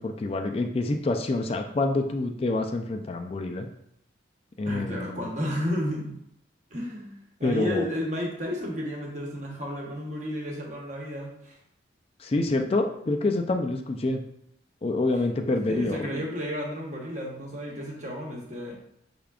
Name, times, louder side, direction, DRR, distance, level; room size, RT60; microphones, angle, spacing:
voice 1, 0.0-3.7 4.6-5.3 7.4-7.9 12.2-14.2 14.8-16.2, left 2 dB, 30° left, 4 dB, 0.3 m, -27 dB
voice 2, 4.7-6.2 6.7-11.6 15.6-18.7, equal, 40° right, -1 dB, 1.0 m, -32 dB
5.8 x 3.5 x 2.4 m, 0.74 s
head